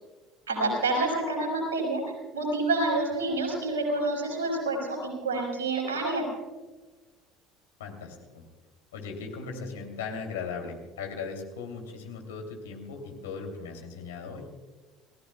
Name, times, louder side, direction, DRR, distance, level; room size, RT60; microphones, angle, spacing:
voice 1, 0.5-2.0 2.3-6.3, right 2 dB, 75° right, 0 dB, 5.3 m, -28 dB
voice 2, 7.8-8.4 8.9-14.5, left 5 dB, 70° left, 3 dB, 3.0 m, -38 dB
29.5 x 17.0 x 2.4 m, 1.2 s
figure-of-eight pair, 65°, 0 cm